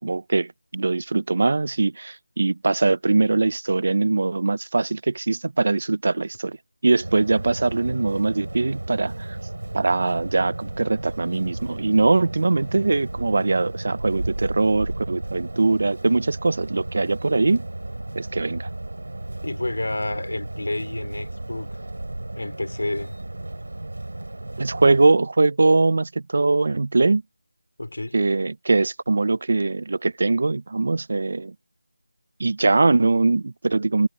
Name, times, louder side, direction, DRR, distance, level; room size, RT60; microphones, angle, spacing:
voice 1, 0.0-6.6 6.8-9.4 9.7-17.6 18.2-18.7 24.6-27.2 28.1-31.5 32.4-34.1, right 3 dB, 45° right, 0.4 m, -21 dB
sound 1, 7.0-25.1, right 2 dB, 85° right, 5.6 m, -34 dB
voice 2, 19.4-21.7 22.4-23.2 27.8-28.2, left 2 dB, 85° left, 3.6 m, -30 dB
figure-of-eight pair, 175°, 0 cm